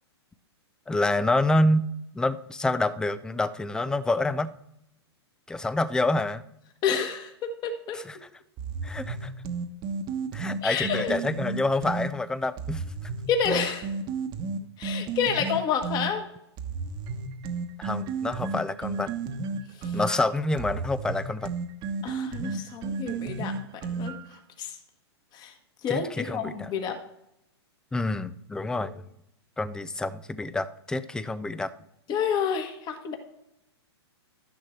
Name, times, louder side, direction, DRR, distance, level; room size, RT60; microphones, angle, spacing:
voice 1, 0.9-4.5 5.5-6.4 7.9-8.2 8.8-9.3 10.3-12.8 17.8-19.1 19.9-21.5 25.9-26.7 27.9-29.1 29.6-31.7, left 2 dB, 5° left, 15 dB, 0.4 m, -27 dB
voice 2, 6.8-8.0 10.6-11.2 13.3-13.9 14.8-16.2 19.8-20.0 22.0-23.5 23.8-24.1 24.6-24.8 25.3-25.5 25.8-27.0 32.1-33.2, left 7 dB, 30° left, 5 dB, 1.4 m, -29 dB
sound 1, 8.6-12.1 12.6-16.1 16.6-24.4, right 4 dB, 30° right, 1.1 m, -32 dB
12.0 x 10.5 x 3.2 m, 0.81 s
hypercardioid pair, 130°, 14 cm